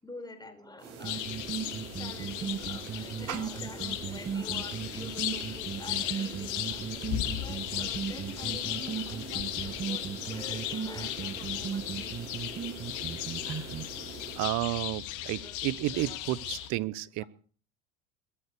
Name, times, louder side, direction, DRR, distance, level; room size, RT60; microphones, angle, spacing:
voice 1, 0.0-1.5 1.9-12.2 12.5-13.1 15.4-15.6 15.8-16.6 17.2-17.3, left 2 dB, 10° left, 7 dB, 4.2 m, -47 dB
sound 1, 0.8-14.5, right 5 dB, 70° right, 7.2 m, -45 dB
sound 2, 1.0-16.7, left 13 dB, 55° left, 2.3 m, -37 dB
sound 3, 1.0-13.8, right 7 dB, 30° right, 1.7 m, -36 dB
voice 2, 14.4-17.2, right 17 dB, 50° right, 21 dB, 1.0 m, -32 dB
22.0 x 8.2 x 6.8 m, 0.41 s
hypercardioid pair, 80°, 37 cm